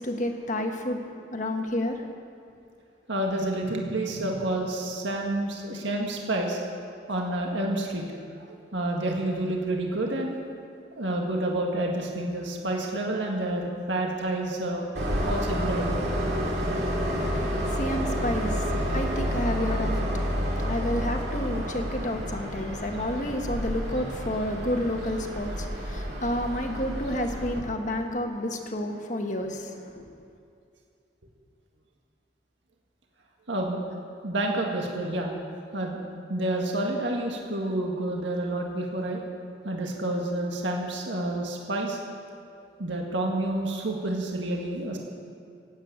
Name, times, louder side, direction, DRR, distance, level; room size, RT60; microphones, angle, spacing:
voice 1, 0.0-2.0 17.2-30.1, left 1 dB, 40° left, 4 dB, 1.4 m, -30 dB
voice 2, 3.1-6.6 7.1-8.1 8.7-10.4 10.9-14.9 15.3-16.0 33.5-33.8 34.2-35.3 35.7-36.0 36.3-39.2 39.6-42.0 42.8-45.0, right 1 dB, 75° right, 0 dB, 1.8 m, -29 dB
Train, 14.9-27.6, equal, 60° right, 2.7 m, -29 dB
15.5 x 8.9 x 8.8 m, 2.4 s
head